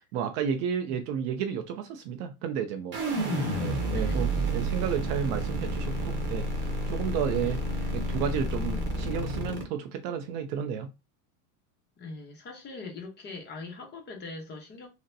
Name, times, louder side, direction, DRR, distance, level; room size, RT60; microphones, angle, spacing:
voice 1, 0.1-3.3 3.6-7.6 7.9-10.9, right 8 dB, 45° right, 0.5 m, -32 dB
sound 1, 2.9-9.6, right 1 dB, 25° right, 1.0 m, -30 dB
voice 2, 3.2-4.3 7.4-7.6 12.0-14.9, left 3 dB, 25° left, 0.8 m, -42 dB
3.9 x 2.1 x 2.6 m
supercardioid pair, 140°, 43 cm